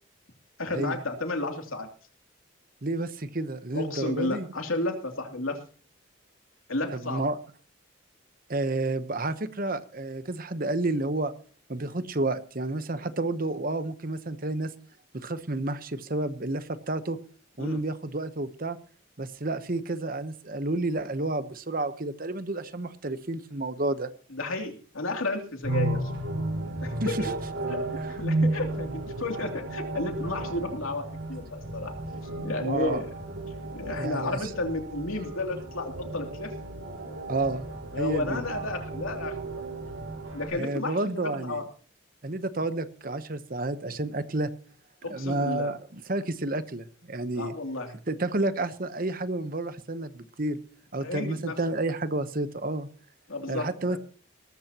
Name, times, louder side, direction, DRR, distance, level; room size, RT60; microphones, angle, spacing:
voice 1, 0.6-1.9 3.7-5.6 6.7-7.2 17.6-17.8 24.3-26.1 26.8-27.3 27.7-31.9 32.4-33.1 33.7-36.5 37.9-39.6 40.3-41.7 45.0-45.7 47.3-47.9 51.0-51.6 53.3-54.0, left 2 dB, 85° left, 3 dB, 2.9 m, -32 dB
voice 2, 2.8-4.5 6.9-7.4 8.5-11.3 11.7-14.7 15.1-17.2 17.6-18.8 19.2-24.1 27.0-27.2 32.6-33.0 34.0-34.4 37.3-37.7 38.0-38.4 40.5-41.6 42.2-44.5 45.1-47.5 48.1-50.6 50.9-52.9 53.5-54.0, right 2 dB, 45° right, 11 dB, 1.0 m, -30 dB
sound 1, 25.6-40.5, right 2 dB, 75° right, 4.5 m, -33 dB
19.0 x 14.0 x 3.0 m, 0.42 s
head